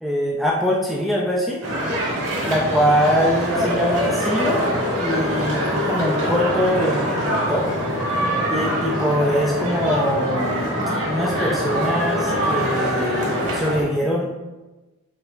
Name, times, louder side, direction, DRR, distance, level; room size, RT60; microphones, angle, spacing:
voice 1, 0.0-1.6 2.4-4.6 5.0-7.7 8.5-10.8 11.0-14.5, equal, ahead, -3 dB, 0.3 m, -23 dB
sound 1, 1.6-13.8, equal, 75° right, 1.5 m, -23 dB
4.7 x 3.1 x 2.5 m, 1.1 s
head